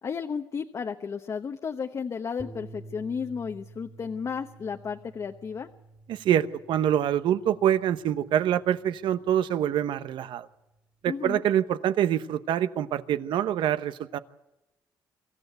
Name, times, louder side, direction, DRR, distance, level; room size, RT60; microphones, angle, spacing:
voice 1, 0.0-5.7 11.1-11.4, left 6 dB, 40° left, 5 dB, 1.0 m, -33 dB
sound 1, 2.4-10.8, right 2 dB, 15° right, 2.3 m, -50 dB
voice 2, 6.1-10.5 11.0-14.2, right 10 dB, 80° right, 13 dB, 1.0 m, -25 dB
24.5 x 14.5 x 8.0 m, 0.96 s
cardioid pair, 125°, 8 cm